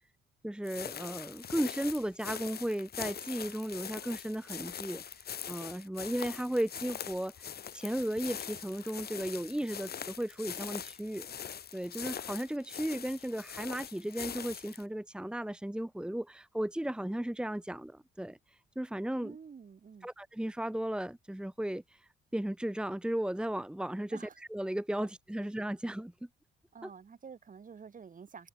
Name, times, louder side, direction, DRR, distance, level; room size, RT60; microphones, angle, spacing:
voice 1, 0.4-5.0 5.5-11.3 11.7-19.4 20.0-26.1 26.8-26.9, right 1 dB, 5° right, 1.8 m, -35 dB
sound 1, 0.6-14.8, left 8 dB, 50° left, 2.6 m, -42 dB
voice 2, 19.2-20.1 24.1-24.4 25.0-25.1 25.4-25.5 26.7-28.5, right 6 dB, 40° right, 5.8 m, -49 dB
cardioid pair, 90°, 20 cm